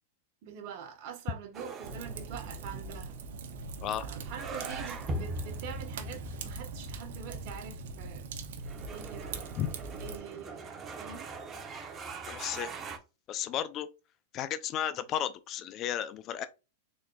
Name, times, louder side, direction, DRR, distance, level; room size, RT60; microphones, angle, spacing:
voice 1, 0.4-3.2 3.9-8.3 8.9-9.6 10.0-11.3, right 7 dB, 55° right, 1.3 m, -45 dB
sound 1, 1.5-13.0, right 2 dB, 25° right, 0.9 m, -42 dB
Fire, 1.8-10.2, right 4 dB, 70° right, 0.8 m, -42 dB
voice 2, 12.3-12.7 13.3-13.9 14.3-16.4, left 10 dB, 35° left, 0.4 m, -33 dB
4.1 x 3.7 x 2.3 m
hypercardioid pair, 120°, 0 cm